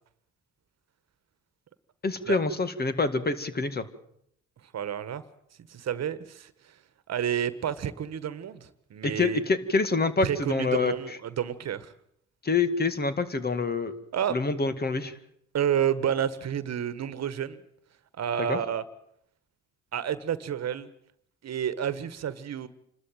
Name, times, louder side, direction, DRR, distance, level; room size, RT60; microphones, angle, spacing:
voice 1, 2.0-3.8 9.0-10.9 12.4-13.9 14.3-15.1 18.5-18.6, left 4 dB, 30° left, 11 dB, 2.2 m, -26 dB
voice 2, 4.7-5.2 5.7-6.5 7.1-9.4 10.2-11.9 14.1-14.4 15.5-17.6 18.2-18.8 19.9-20.9 21.4-22.7, right 9 dB, 60° right, 15 dB, 1.5 m, -30 dB
27.5 x 13.0 x 9.1 m, 0.72 s
cardioid pair, 90°, 30 cm